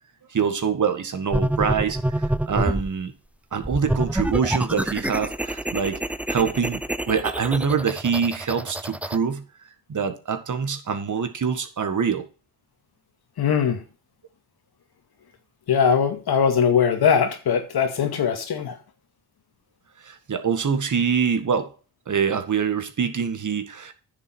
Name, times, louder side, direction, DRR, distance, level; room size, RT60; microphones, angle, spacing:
voice 1, 0.3-3.1 3.5-6.0 6.3-9.4 9.9-12.3 20.0-21.7 22.1-23.9, right 6 dB, 45° right, 1.8 m, -25 dB
sound 1, 1.3-2.9 3.6-9.2, right 1 dB, 5° right, 0.5 m, -27 dB
voice 2, 13.4-13.8 15.7-18.8, left 7 dB, 60° left, 2.2 m, -21 dB
10.0 x 7.0 x 4.6 m
supercardioid pair, 55°, 43 cm